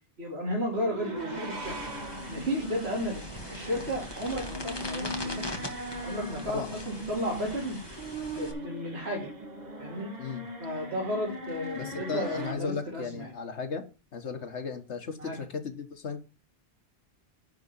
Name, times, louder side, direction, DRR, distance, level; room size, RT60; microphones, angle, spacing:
voice 1, 0.2-1.8 2.3-5.4 6.0-7.8 8.3-9.3 9.8-10.1 10.6-13.3 15.2-15.4, equal, 65° right, -3 dB, 2.9 m, -33 dB
sound 1, 0.7-12.5, right 1 dB, 40° right, 1.6 m, -39 dB
sound 2, 1.6-8.5, left 1 dB, 20° left, 1.6 m, -41 dB
voice 2, 11.7-13.8 14.1-16.2, left 5 dB, 75° left, 7 dB, 1.6 m, -35 dB
10.5 x 3.8 x 7.1 m, 0.31 s
omnidirectional pair, 1.2 m